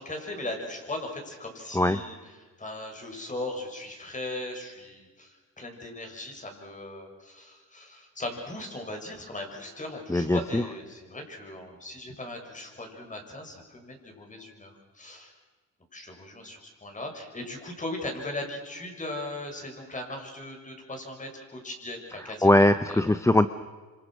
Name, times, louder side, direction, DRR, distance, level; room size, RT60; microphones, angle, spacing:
voice 1, 0.0-2.2 2.6-15.3 15.9-22.5 22.9-23.0, left 1 dB, 25° left, 3 dB, 6.6 m, -38 dB
voice 2, 10.1-10.6 22.2-23.5, left 1 dB, 10° left, 12 dB, 0.7 m, -21 dB
26.5 x 26.5 x 6.4 m, 1.4 s
cardioid pair, 90°, 30 cm